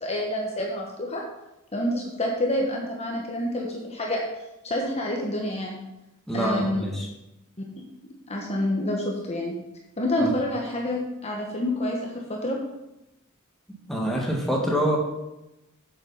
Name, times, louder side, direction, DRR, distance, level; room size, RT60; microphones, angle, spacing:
voice 1, 0.0-1.2 1.7-4.2 4.6-5.8 6.3-6.9 8.3-9.5 10.0-12.6, left 1 dB, 30° left, -1 dB, 1.3 m, -28 dB
voice 2, 6.3-7.1 10.2-10.3 13.9-15.0, right 1 dB, ahead, -2 dB, 1.8 m, -25 dB
7.6 x 7.5 x 5.6 m, 0.92 s
head